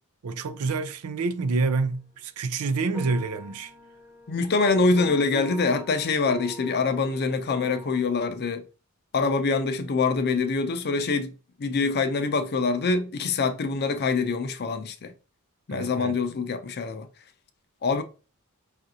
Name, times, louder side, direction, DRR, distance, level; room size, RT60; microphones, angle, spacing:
voice 1, 0.2-3.7 15.7-16.2, right 4 dB, 90° right, 0.5 m, -27 dB
sound 1, 2.9-8.0, equal, 10° right, 0.7 m, -42 dB
voice 2, 4.3-8.6 9.1-11.3 11.6-15.1 15.7-17.1 17.8-18.0, left 4 dB, 45° left, 0.5 m, -25 dB
5.0 x 2.5 x 2.7 m
head